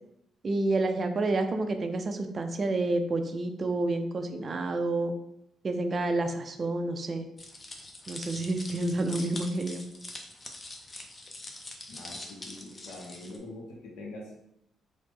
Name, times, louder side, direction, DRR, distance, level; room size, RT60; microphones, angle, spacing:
voice 1, 0.4-5.1 5.6-7.3 8.1-9.8, right 2 dB, 40° right, 7 dB, 0.3 m, -29 dB
sound 1, 7.4-13.4, left 2 dB, 30° left, 0.5 m, -44 dB
voice 2, 11.9-14.4, left 2 dB, 85° left, -1 dB, 0.6 m, -44 dB
3.2 x 2.0 x 3.2 m, 0.80 s
cardioid pair, 90°, 0 cm